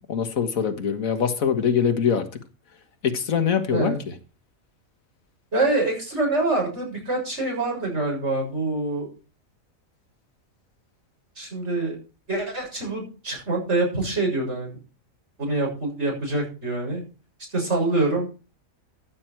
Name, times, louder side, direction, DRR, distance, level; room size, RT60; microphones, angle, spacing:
voice 1, 0.1-2.3 3.0-4.0, left 7 dB, 80° left, 1.9 m, -23 dB
voice 2, 5.5-9.1 11.4-12.0 12.3-14.8 15.4-17.0 17.5-18.3, right 2 dB, 55° right, 7.2 m, -25 dB
15.0 x 9.1 x 4.6 m
omnidirectional pair, 1.4 m